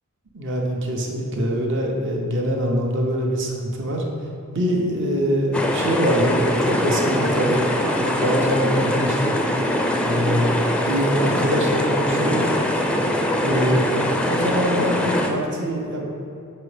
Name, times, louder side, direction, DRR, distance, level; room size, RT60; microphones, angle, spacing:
voice 1, 0.3-4.0 4.5-7.7 8.0-9.4 10.0-10.5 10.8-12.4 13.3-14.0 14.2-16.0, equal, 55° right, 0 dB, 1.0 m, -23 dB
sound 1, 5.5-15.3, left 1 dB, 5° left, 0.4 m, -22 dB
6.6 x 4.3 x 5.0 m, 2.7 s
head